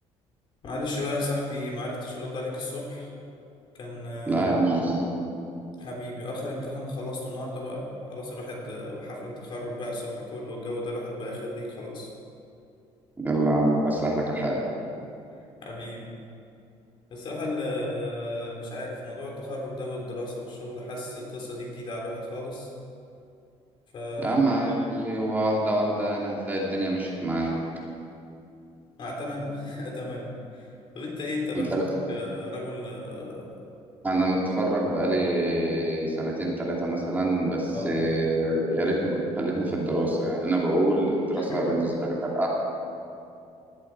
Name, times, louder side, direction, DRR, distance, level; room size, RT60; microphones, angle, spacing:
voice 1, 0.6-3.1 3.7-4.5 5.8-12.1 15.6-16.1 17.1-22.7 23.9-24.4 29.0-30.7 31.0-33.7 37.7-38.1 41.4-41.8, left 1 dB, 45° left, -1 dB, 3.5 m, -34 dB
voice 2, 4.3-5.0 13.2-14.6 24.2-27.6 31.5-31.8 34.0-42.5, right 1 dB, 15° right, -4 dB, 2.6 m, -25 dB
19.0 x 13.0 x 4.7 m, 2.5 s
cardioid pair, 150°, 11 cm